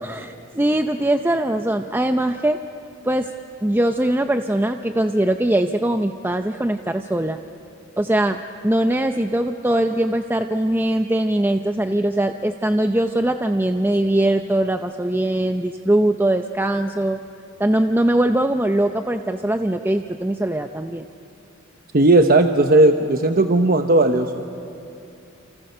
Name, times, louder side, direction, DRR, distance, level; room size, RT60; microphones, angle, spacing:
voice 1, 0.0-2.6 3.0-3.3 3.6-7.4 8.0-17.2 17.6-21.0, right 1 dB, 10° right, 7 dB, 0.6 m, -21 dB
voice 2, 21.9-24.6, right 2 dB, 45° right, 6 dB, 0.9 m, -16 dB
29.0 x 28.5 x 6.8 m, 2.7 s
head